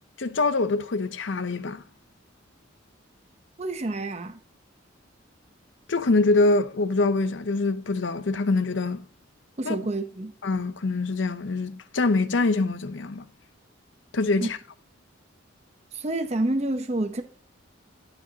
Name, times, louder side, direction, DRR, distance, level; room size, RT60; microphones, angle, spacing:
voice 1, 0.2-1.8 5.9-9.0 9.6-9.8 10.4-13.2 14.1-14.6, left 3 dB, 65° left, 0.7 m, -24 dB
voice 2, 3.6-4.4 9.6-10.3 14.4-14.5 15.9-17.2, right 2 dB, 30° right, 0.8 m, -28 dB
13.0 x 5.0 x 2.8 m
head